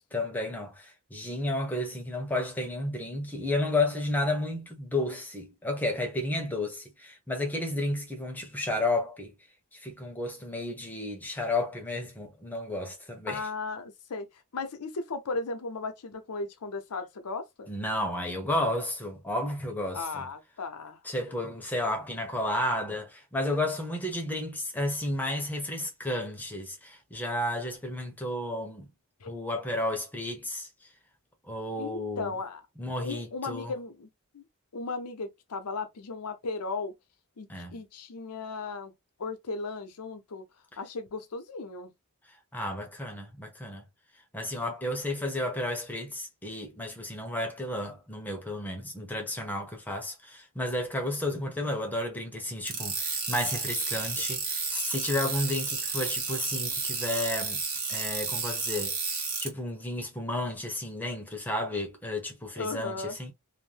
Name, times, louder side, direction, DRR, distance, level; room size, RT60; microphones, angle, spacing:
voice 1, 0.1-9.3 9.7-13.5 17.7-20.3 21.0-28.9 29.3-30.7 31.5-32.4 32.8-33.7 37.5-37.8 42.5-43.9 44.3-57.6 57.9-59.0 59.4-63.3, left 1 dB, 10° left, 0.7 m, -32 dB
voice 2, 13.3-17.7 19.9-21.0 29.2-29.3 31.8-32.6 33.0-34.1 34.3-34.4 34.7-36.9 37.4-38.9 39.2-40.4 40.8-41.9 62.6-63.2, left 3 dB, 90° left, 0.6 m, -36 dB
sound 1, 52.7-59.5, right 4 dB, 85° right, 1.2 m, -32 dB
2.6 x 2.1 x 3.2 m
head